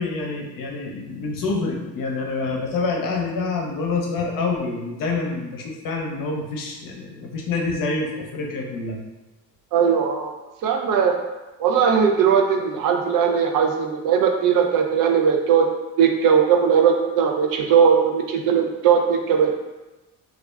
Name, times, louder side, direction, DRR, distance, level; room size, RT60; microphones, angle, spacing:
voice 1, 0.0-9.0, left 3 dB, 60° left, 0 dB, 0.7 m, -27 dB
voice 2, 9.7-10.3 10.6-11.2 11.6-15.7 16.0-19.6, right 7 dB, 60° right, 3 dB, 0.5 m, -19 dB
2.4 x 2.1 x 3.3 m, 1.1 s
supercardioid pair, 70°, 38 cm